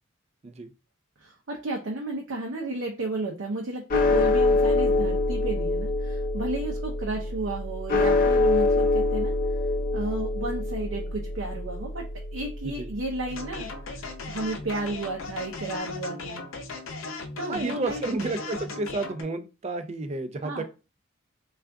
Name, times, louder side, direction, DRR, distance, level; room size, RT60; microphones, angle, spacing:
voice 1, 1.2-9.3 9.9-12.0 12.3-16.4 17.4-18.1 20.4-20.6, right 2 dB, 75° right, 0 dB, 0.6 m, -33 dB
sound 1, 3.9-14.3, left 2 dB, 45° left, 0.5 m, -25 dB
sound 2, 13.3-19.2, left 3 dB, 85° left, 0.6 m, -37 dB
voice 2, 17.5-20.6, right 2 dB, 35° right, 10 dB, 0.4 m, -31 dB
3.6 x 2.4 x 3.3 m, 0.32 s
head